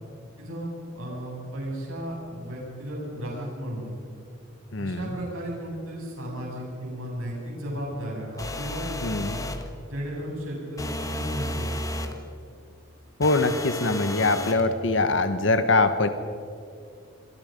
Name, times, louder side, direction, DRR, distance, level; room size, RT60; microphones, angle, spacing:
voice 1, 0.4-3.9 4.8-9.4 9.9-11.8, equal, 85° right, -2 dB, 7.8 m, -34 dB
voice 2, 4.7-5.1 9.0-9.3 13.2-16.1, left 3 dB, 60° left, 9 dB, 1.2 m, -23 dB
sound 1, 8.4-9.7 10.8-12.2 13.2-14.7, left 1 dB, 15° left, 1.4 m, -32 dB
27.0 x 23.0 x 5.3 m, 2.4 s
head